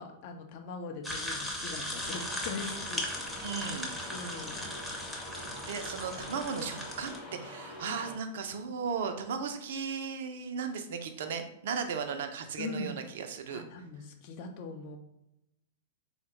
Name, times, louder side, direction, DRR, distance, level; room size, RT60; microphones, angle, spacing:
voice 1, 0.0-3.3 4.1-4.7 7.8-8.0 12.6-13.0 13.5-15.0, left 3 dB, 45° left, 4 dB, 0.5 m, -41 dB
sound 1, 1.0-7.2, left 1 dB, 5° left, 0.6 m, -38 dB
sound 2, 2.0-8.2, left 1 dB, 20° left, 1.0 m, -45 dB
voice 2, 3.4-3.9 5.3-13.6, right 6 dB, 55° right, 7 dB, 0.3 m, -36 dB
3.9 x 2.1 x 2.9 m, 0.83 s
figure-of-eight pair, 100°, 0 cm